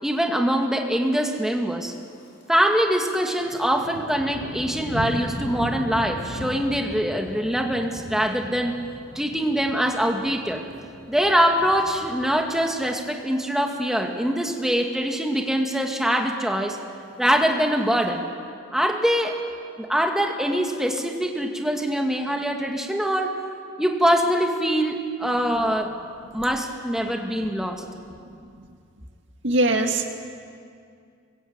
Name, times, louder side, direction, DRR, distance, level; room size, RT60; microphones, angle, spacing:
voice 1, 0.0-1.9 2.5-8.7 9.1-10.6 11.1-16.8 17.2-18.2 18.7-19.4 19.8-23.4 23.8-25.9 26.3-27.8, equal, ahead, 2 dB, 2.1 m, -23 dB
Thunder, 1.9-2.5 2.8-13.1 13.5-13.9 14.3-14.7 15.0-15.1 15.3-15.4 15.8-16.3 17.1-18.0, equal, 65° left, 5.1 m, -38 dB
voice 2, 29.4-30.1, right 2 dB, 65° right, 4 dB, 2.2 m, -21 dB
25.0 x 22.0 x 8.9 m, 2.3 s
head